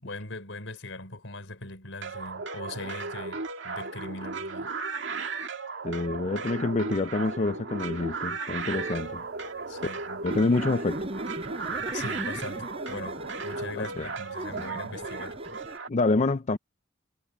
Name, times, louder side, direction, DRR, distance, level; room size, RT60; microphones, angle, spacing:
voice 1, 0.0-4.7 9.7-10.3 11.9-15.4, left 2 dB, 80° left, 4.9 m, -40 dB
sound 1, 2.0-15.9, right 4 dB, 70° right, 2.3 m, -35 dB
voice 2, 5.8-9.3 10.2-11.1 13.8-14.1 14.6-14.7 15.9-16.6, left 3 dB, 40° left, 0.5 m, -27 dB
sound 2, 8.6-14.6, right 4 dB, 50° right, 1.4 m, -47 dB
sound 3, 10.3-15.8, right 1 dB, 30° right, 5.5 m, -39 dB
head